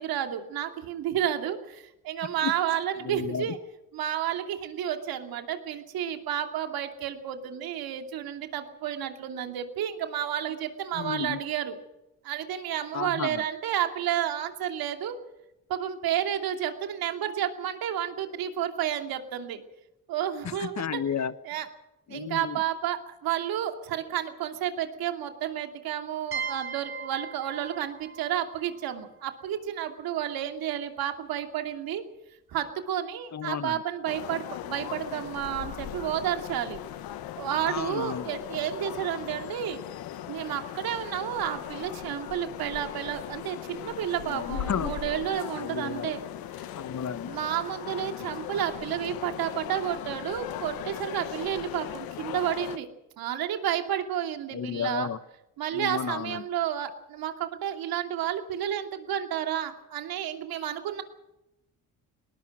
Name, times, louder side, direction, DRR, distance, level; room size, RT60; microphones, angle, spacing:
voice 1, 0.0-3.6 3.9-11.7 12.2-15.1 15.7-19.6 20.1-21.0 21.4-21.7 22.1-32.0 32.5-36.8 37.4-39.8 40.3-46.2 47.3-52.9 53.2-55.1 55.6-61.0, right 10 dB, 85° right, 2.7 m, -31 dB
voice 2, 3.0-3.5 10.9-11.4 12.9-13.4 20.4-21.3 22.1-22.6 33.3-33.7 37.7-38.3 44.3-45.0 45.6-46.1 46.7-47.3 54.5-55.2 55.7-56.4, left 7 dB, 50° left, 1.3 m, -32 dB
sound 1, 26.3-29.9, right 6 dB, 35° right, 5.2 m, -39 dB
sound 2, 34.1-52.8, left 12 dB, 90° left, 1.3 m, -38 dB
21.5 x 19.5 x 6.3 m
supercardioid pair, 60°, 35 cm